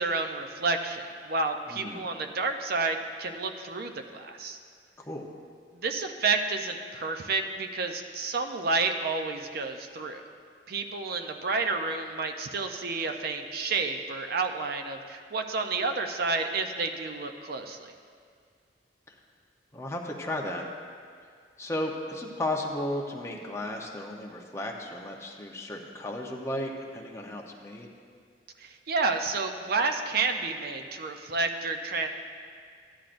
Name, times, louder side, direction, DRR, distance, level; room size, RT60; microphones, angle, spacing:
voice 1, 0.0-4.6 5.7-10.2 10.7-17.9 28.6-32.1, right 3 dB, 60° right, 5 dB, 0.6 m, -30 dB
voice 2, 1.7-2.1 5.0-5.3 19.1-19.2 19.7-20.7 21.6-27.9, left 1 dB, 15° left, 0 dB, 0.8 m, -34 dB
14.5 x 10.0 x 2.6 m, 2.1 s
head